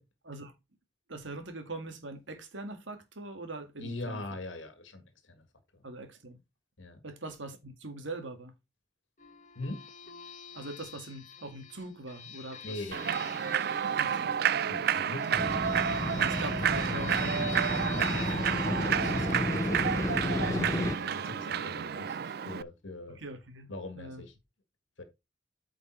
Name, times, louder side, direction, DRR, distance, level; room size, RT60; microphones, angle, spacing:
voice 1, 1.1-4.3 5.8-6.4 7.0-8.5 10.5-12.7 14.0-14.4 16.1-18.4 23.1-24.2, right 2 dB, 80° right, 1.9 m, -42 dB
voice 2, 3.8-5.4 5.7-5.8 6.8-7.0 9.5-9.8 12.6-13.5 14.7-16.1 17.9-23.2 23.7-24.3 25.0-25.1, left 2 dB, 80° left, 1.7 m, -41 dB
sound 1, 9.2-22.4, left 6 dB, 40° left, 1.6 m, -47 dB
Human voice / Clapping / Cheering, 12.9-22.6, right 8 dB, 55° right, 0.4 m, -30 dB
Motorcycle, 15.4-21.0, left 1 dB, 15° left, 0.4 m, -32 dB
9.0 x 5.2 x 4.4 m
head